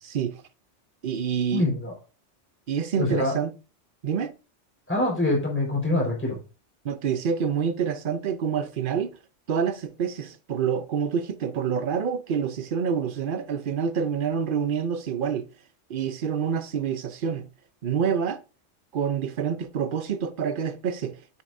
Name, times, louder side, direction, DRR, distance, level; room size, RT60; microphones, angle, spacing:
voice 1, 0.0-0.4 1.0-1.7 2.7-3.5 4.0-4.3 6.8-9.2 9.5-15.5 15.9-17.5 17.8-18.4 18.9-21.4, right 7 dB, 55° right, 0.7 m, -27 dB
voice 2, 1.5-1.9 3.0-3.3 4.9-6.4, left 2 dB, 10° left, 4.4 m, -24 dB
9.1 x 8.6 x 2.6 m
omnidirectional pair, 1.2 m